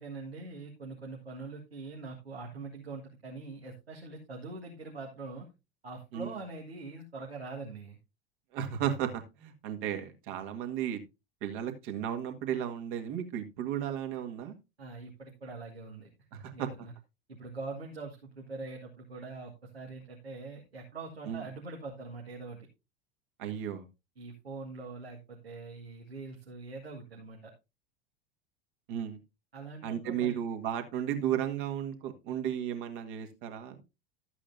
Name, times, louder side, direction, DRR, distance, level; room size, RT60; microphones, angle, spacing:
voice 1, 0.0-5.5 5.8-8.0 14.8-16.1 16.5-16.9 17.3-22.7 24.2-27.5 29.5-30.4, right 3 dB, 85° right, 0 dB, 1.7 m, -43 dB
voice 2, 8.5-11.0 11.4-14.5 16.3-16.7 21.3-21.5 23.4-23.8 28.9-29.2 29.8-33.8, right 10 dB, 55° right, 6 dB, 1.8 m, -34 dB
12.5 x 8.3 x 2.6 m, 0.26 s
figure-of-eight pair, 85°, 30 cm